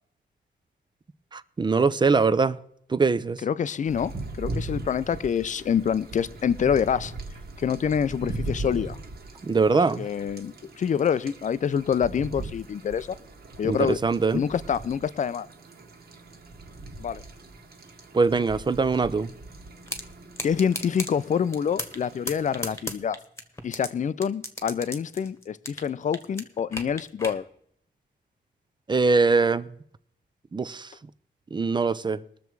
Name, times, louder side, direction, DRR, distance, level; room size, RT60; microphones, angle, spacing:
voice 1, 1.3-2.6 2.9-3.4 9.4-10.1 13.6-14.4 18.1-19.3 28.9-29.7 30.5-30.9 31.5-32.2, right 4 dB, 25° right, 0.5 m, -22 dB
voice 2, 3.4-7.1 7.6-9.0 10.0-13.2 13.6-14.0 14.3-15.5 17.0-17.2 20.4-23.2 23.6-27.4, left 7 dB, 40° left, 0.5 m, -26 dB
sound 1, 3.9-22.8, right 2 dB, 60° right, 1.7 m, -40 dB
sound 2, 19.9-20.0 20.4-21.1 21.5-22.0 22.3-23.9 24.2-25.9 26.1-27.4, left 2 dB, 15° left, 1.3 m, -34 dB
20.5 x 6.9 x 4.6 m
wide cardioid pair, 145°, 19 cm